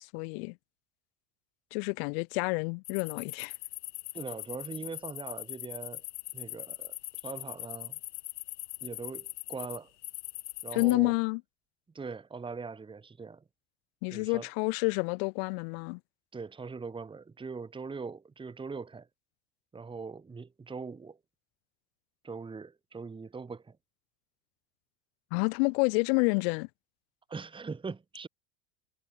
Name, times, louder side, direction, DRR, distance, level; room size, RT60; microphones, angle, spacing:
voice 1, 0.1-0.6 1.7-3.5 10.7-11.4 14.0-16.0 25.3-26.7, left 34 dB, 60° left, 0.5 m, -29 dB
sound 1, 2.8-10.9, left 17 dB, 85° left, 1.2 m, -41 dB
voice 2, 4.1-6.0 6.3-7.0 7.2-8.0 8.8-9.9 10.6-11.1 11.9-13.4 14.1-14.5 16.3-19.1 19.7-21.2 22.2-23.8 27.3-28.3, right 4 dB, 15° right, 2.5 m, -41 dB
supercardioid pair, 115°, 35 cm